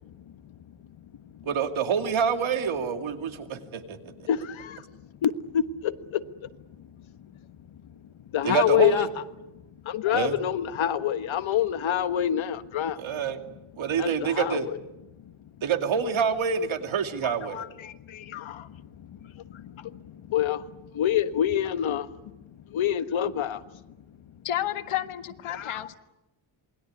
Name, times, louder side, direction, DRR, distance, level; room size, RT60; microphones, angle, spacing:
voice 1, 0.0-0.6 1.0-1.5 3.5-3.6 4.1-4.9 5.2-6.5 6.8-7.4 7.7-8.0 8.3-9.1 9.8-13.0 14.0-14.8 15.2-15.3 17.2-22.3 22.7-23.8 25.5-25.9, left 10 dB, 65° left, 11 dB, 1.5 m, -28 dB
voice 2, 1.5-4.3 8.4-9.1 10.1-10.4 13.0-13.4 13.8-14.7 15.6-17.6, right 6 dB, 70° right, 6 dB, 2.6 m, -27 dB
voice 3, 24.4-25.9, left 12 dB, 85° left, 9 dB, 1.7 m, -31 dB
27.0 x 21.0 x 9.6 m, 0.99 s
cardioid pair, 120°, 50 cm